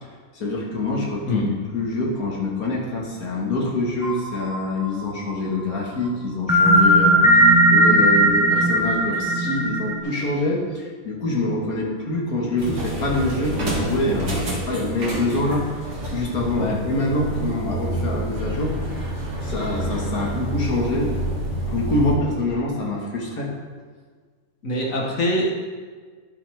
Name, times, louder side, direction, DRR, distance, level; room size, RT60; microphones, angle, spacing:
voice 1, 0.3-15.7 16.1-18.9 19.4-21.1 21.7-23.5, left 2 dB, 90° left, -2 dB, 2.2 m, -25 dB
sound 1, 4.0-5.3 6.5-10.0, right 1 dB, 5° right, 0.6 m, -17 dB
sound 2, 12.6-22.1, right 1 dB, 55° right, 2.0 m, -28 dB
voice 2, 24.6-25.4, left 1 dB, 65° left, -1 dB, 1.7 m, -23 dB
11.0 x 8.1 x 3.5 m, 1.5 s
omnidirectional pair, 1.5 m